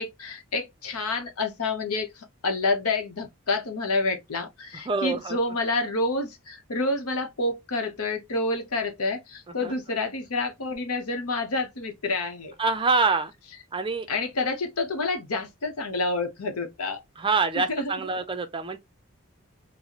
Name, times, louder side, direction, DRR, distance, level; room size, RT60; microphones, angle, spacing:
voice 1, 0.0-2.1 2.4-12.5 14.1-17.0 17.6-17.9, left 2 dB, 80° left, 0.8 m, -28 dB
voice 2, 4.9-5.4 9.6-9.7 12.6-13.3 13.7-14.1 17.2-18.8, right 4 dB, 25° right, 0.4 m, -25 dB
4.0 x 2.1 x 2.9 m
head